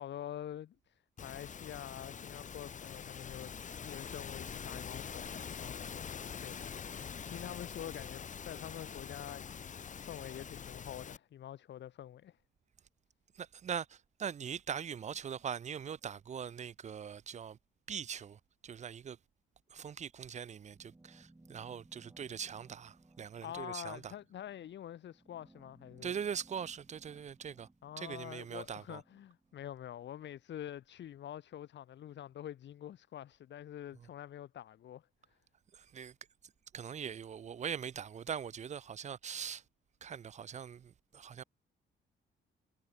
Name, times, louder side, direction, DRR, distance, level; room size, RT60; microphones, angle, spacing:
voice 1, 0.0-3.5 3.8-12.4 23.4-26.1 27.8-35.0, left 11 dB, 65° left, 1.4 m, -46 dB
sound 1, 1.2-11.2, left 7 dB, 40° left, 0.9 m, -44 dB
voice 2, 13.4-17.6 17.9-19.2 19.7-24.1 26.0-27.7 28.0-29.0 35.7-36.1 36.7-39.6 40.0-41.4, right 7 dB, 35° right, 0.5 m, -41 dB
sound 2, 20.7-29.6, right 2 dB, 15° right, 2.6 m, -63 dB
cardioid pair, 90°, 20 cm